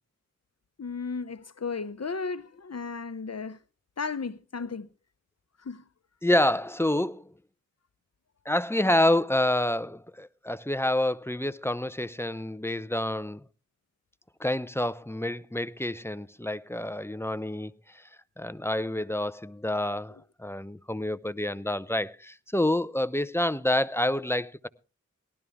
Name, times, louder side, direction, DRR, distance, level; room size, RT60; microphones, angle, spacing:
voice 1, 0.8-3.6 4.0-4.9 5.6-5.8, left 4 dB, 55° left, 0.8 m, -34 dB
voice 2, 6.2-7.2 8.5-13.4 14.4-18.0 18.4-24.7, left 1 dB, 10° left, 0.6 m, -28 dB
18.5 x 12.5 x 3.5 m
wide cardioid pair, 45°, 30 cm